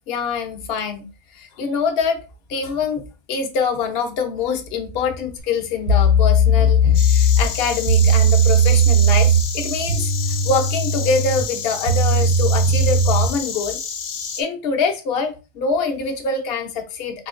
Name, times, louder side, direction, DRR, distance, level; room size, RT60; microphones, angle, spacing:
voice 1, 0.1-1.0 1.3-2.2 2.5-3.0 3.3-9.3 9.5-10.1 10.4-13.8 14.4-17.3, left 5 dB, 60° left, 4 dB, 0.9 m, -24 dB
sound 1, 5.4-5.5 5.9-13.4, right 1 dB, 60° right, 1.0 m, -17 dB
Insect, 6.9-14.4, left 7 dB, 85° left, 1.0 m, -30 dB
4.2 x 2.8 x 2.4 m, 0.32 s
omnidirectional pair, 1.2 m